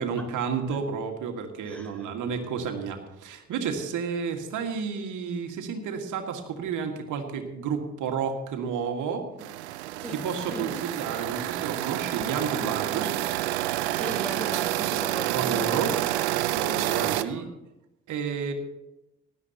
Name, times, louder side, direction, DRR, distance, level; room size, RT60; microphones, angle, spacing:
voice 1, 0.0-9.3 10.2-13.1 15.3-15.9 16.5-17.5 18.1-18.5, right 6 dB, 70° right, 4 dB, 2.0 m, -31 dB
voice 2, 1.7-2.1 10.0-10.2 10.5-10.8 13.8-17.5, right 1 dB, 5° left, 2 dB, 4.5 m, -39 dB
sound 1, 9.4-17.2, right 16 dB, 90° right, 0.5 m, -28 dB
19.0 x 12.0 x 3.0 m, 0.92 s
hypercardioid pair, 45°, 32 cm